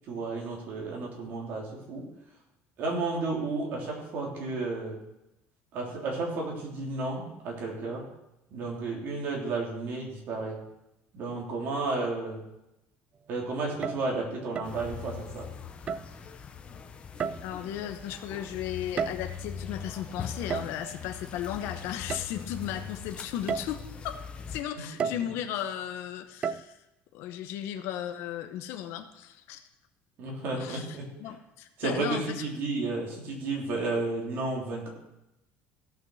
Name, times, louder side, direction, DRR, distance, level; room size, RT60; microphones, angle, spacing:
voice 1, 0.1-2.1 2.8-5.0 5.7-8.1 8.5-10.6 11.1-12.4 13.3-15.5 25.0-25.1 30.2-31.1 31.8-34.9, right 3 dB, 45° right, -1 dB, 3.3 m, -32 dB
sound 1, 13.7-14.1 14.5-14.8 15.9-16.2 17.2-17.7 18.7-19.5 20.5-20.9 22.1-22.3 22.8-22.9 23.5-23.8 25.0-25.4 26.4-26.6, right 6 dB, 25° right, 0.4 m, -33 dB
sound 2, 14.6-24.6, left 7 dB, 25° left, 0.8 m, -42 dB
voice 2, 17.4-24.2 24.5-26.8 27.1-29.6 30.5-32.4, left 10 dB, 60° left, 7 dB, 0.9 m, -36 dB
16.0 x 6.1 x 6.3 m, 0.89 s
cardioid pair, 175°, 5 cm